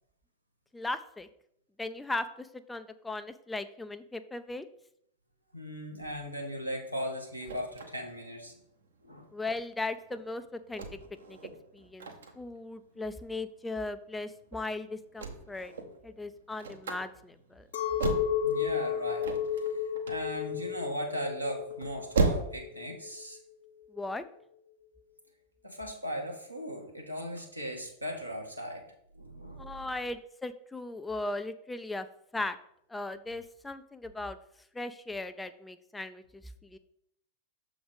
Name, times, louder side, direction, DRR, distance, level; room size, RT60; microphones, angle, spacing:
voice 1, 0.7-1.3 1.8-4.7 9.3-10.9 11.3-11.4 11.7-12.1 12.4-15.7 16.0-17.7 23.9-24.2 29.6-32.1 32.3-32.6 32.9-34.4 34.7-36.8, left 2 dB, 10° left, 11 dB, 0.4 m, -37 dB
voice 2, 5.5-8.5 9.0-9.2 18.4-19.7 20.1-23.4 25.6-28.8 29.1-29.7, equal, 90° right, -1 dB, 1.5 m, -38 dB
sound 1, 6.0-22.8, right 4 dB, 65° right, 1.0 m, -36 dB
Chink clink, 17.7-23.2, left 8 dB, 60° left, 0.6 m, -33 dB
6.8 x 3.9 x 5.2 m, 0.72 s
figure-of-eight pair, 90°, 0 cm